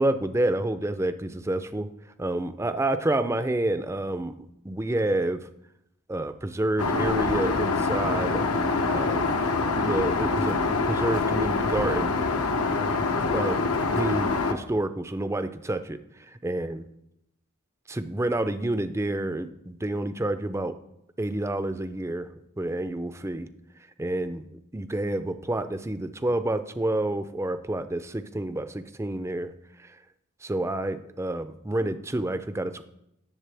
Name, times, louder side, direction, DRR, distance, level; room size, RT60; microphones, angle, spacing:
voice 1, 0.0-1.9 2.2-4.3 4.6-5.4 6.1-8.4 8.9-9.3 9.8-10.6 10.8-12.9 13.2-16.8 17.9-20.7 21.2-22.3 22.6-23.5 24.0-24.4 24.7-29.5 29.8-30.0 30.4-32.8, right 1 dB, 10° right, 11 dB, 0.4 m, -29 dB
Aircraft, 6.8-14.5, left 3 dB, 75° left, 0.9 m, -25 dB
18.0 x 7.3 x 3.4 m, 0.82 s
head